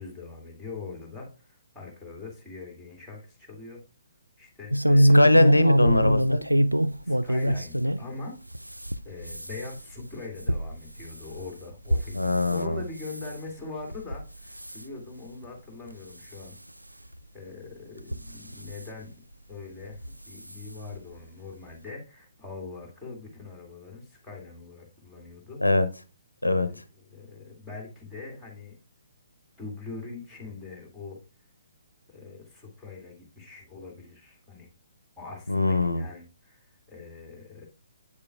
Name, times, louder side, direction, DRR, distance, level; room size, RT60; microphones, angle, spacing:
voice 1, 0.0-3.8 4.4-5.4 7.0-8.4 9.0-16.6 17.3-19.1 19.5-25.6 26.4-26.8 27.1-28.7 29.6-31.2 32.1-34.7 35.2-37.7, left 4 dB, ahead, 1 dB, 2.2 m, -42 dB
sound 1, 4.7-8.0 8.5-12.6 13.0-13.4 13.9-14.2 14.5-14.8 15.4-15.5 15.9-16.0 17.1-17.2 18.0-18.8 19.9-20.1 20.5-20.6 20.9-21.0, equal, 85° right, 0.3 m, -24 dB
voice 2, 5.0-6.4 12.1-12.8 25.6-25.9 26.4-26.7 35.5-36.0, left 1 dB, 85° left, 12 dB, 0.6 m, -21 dB
8.3 x 6.7 x 2.3 m, 0.33 s
figure-of-eight pair, 130°, 0 cm